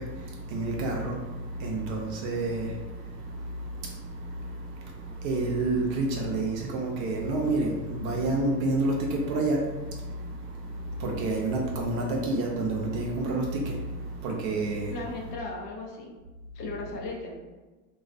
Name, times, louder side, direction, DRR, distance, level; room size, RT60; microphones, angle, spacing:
voice 1, 0.0-15.0, right 2 dB, 55° right, 0.6 m, -30 dB
voice 2, 14.9-16.1 16.5-17.3, left 2 dB, 85° left, 0.6 m, -36 dB
2.4 x 2.3 x 2.4 m
hypercardioid pair, 80°, 47 cm